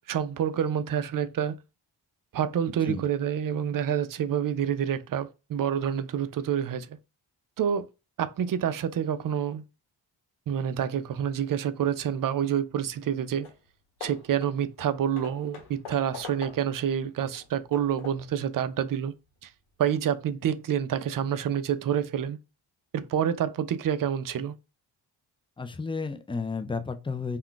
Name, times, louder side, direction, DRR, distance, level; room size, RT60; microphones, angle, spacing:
voice 1, 0.1-1.6 2.3-6.9 7.6-7.9 8.2-9.6 10.5-13.5 14.0-19.1 19.8-22.4 22.9-24.5, right 9 dB, 45° right, 0.5 m, -28 dB
voice 2, 2.7-3.0 25.6-27.4, left 4 dB, 10° left, 0.3 m, -32 dB
Hammer / Wood, 13.4-13.7 14.0-16.9 17.3-18.4, left 5 dB, 80° left, 1.0 m, -44 dB
2.3 x 2.3 x 3.7 m
cardioid pair, 55°, 49 cm